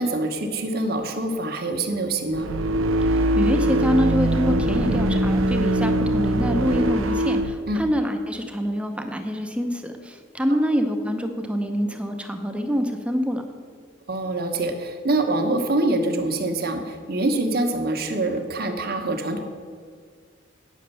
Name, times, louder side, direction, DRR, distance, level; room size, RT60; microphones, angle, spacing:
voice 1, 0.0-2.5 7.7-7.8 14.1-19.4, right 2 dB, 50° right, 4 dB, 1.2 m, -25 dB
sound 1, 2.3-7.5, right 1 dB, 90° right, 0.6 m, -22 dB
voice 2, 3.0-13.5, equal, 5° right, 5 dB, 0.7 m, -25 dB
9.3 x 6.5 x 6.7 m, 2.1 s
head